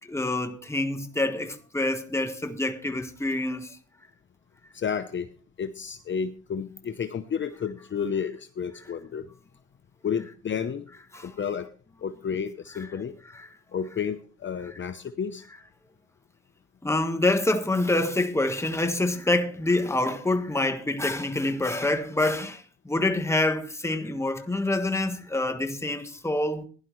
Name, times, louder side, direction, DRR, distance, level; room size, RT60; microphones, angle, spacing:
voice 1, 0.0-3.8 11.1-11.3 13.3-13.5 16.8-26.6, left 2 dB, 10° left, 1.4 m, -26 dB
voice 2, 4.7-5.3 5.6-9.3 10.0-10.9 11.2-11.7 12.0-13.1 13.7-15.4, left 7 dB, 40° left, 0.8 m, -31 dB
16.0 x 11.0 x 3.1 m
cardioid pair, 90°, 30 cm